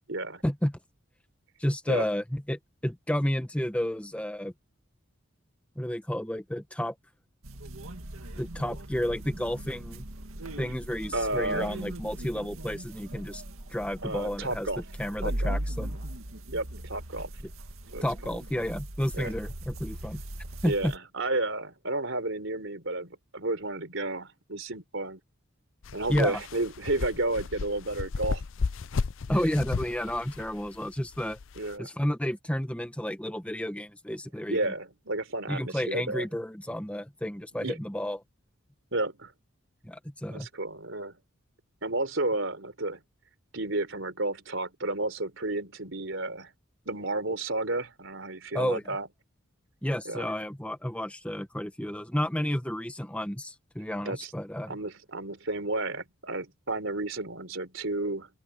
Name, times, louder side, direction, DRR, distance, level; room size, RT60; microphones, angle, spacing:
voice 1, 0.1-0.4 1.9-2.0 11.1-11.7 14.0-14.8 15.2-15.6 16.5-17.3 17.9-18.0 19.1-19.3 20.6-25.2 25.9-28.4 31.6-31.9 34.5-36.3 37.6-37.8 38.9-39.3 40.3-41.1 41.8-43.0 43.5-46.5 46.9-49.1 50.1-50.3 54.1-54.3 54.7-58.3, right 2 dB, 65° right, 3.9 m, -32 dB
voice 2, 1.6-4.5 5.8-6.9 8.4-10.0 10.6-13.4 13.7-14.7 15.0-15.9 18.0-20.2 20.6-20.9 26.1-26.4 29.3-31.4 31.8-34.7 35.5-38.2 39.8-40.5 48.5-48.8 49.8-54.8, equal, 5° left, 1.1 m, -31 dB
sound 1, 7.4-21.0, right 1 dB, 80° right, 2.2 m, -39 dB
sound 2, 25.8-31.8, left 4 dB, 70° left, 0.5 m, -34 dB
open air
head